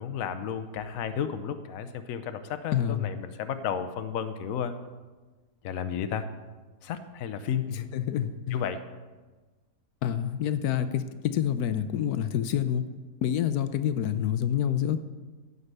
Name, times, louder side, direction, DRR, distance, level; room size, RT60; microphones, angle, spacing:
voice 1, 0.0-4.7 5.6-6.3 6.8-7.7 8.5-8.8, left 8 dB, 70° left, 10 dB, 1.1 m, -32 dB
voice 2, 2.7-3.1 7.7-8.6 10.0-12.8 13.2-15.0, left 10 dB, 85° left, 11 dB, 1.2 m, -27 dB
15.5 x 5.5 x 6.6 m, 1.3 s
omnidirectional pair, 1.6 m